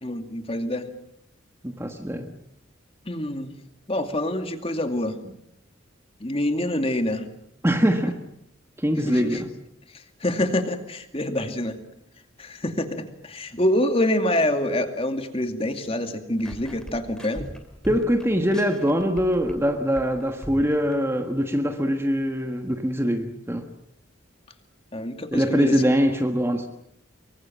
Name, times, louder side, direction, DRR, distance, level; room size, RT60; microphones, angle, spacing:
voice 1, 0.0-0.9 3.1-3.5 3.9-5.2 6.2-7.3 9.0-9.4 10.2-11.8 12.4-17.5 24.9-25.8, left 1 dB, 30° left, 2.4 m, -26 dB
voice 2, 1.6-2.3 7.6-8.2 8.8-9.5 17.8-23.6 25.3-26.7, equal, 10° right, 1.5 m, -23 dB
sound 1, 16.4-19.7 19.9-21.0, equal, 5° left, 2.6 m, -40 dB
25.0 x 23.5 x 7.6 m
head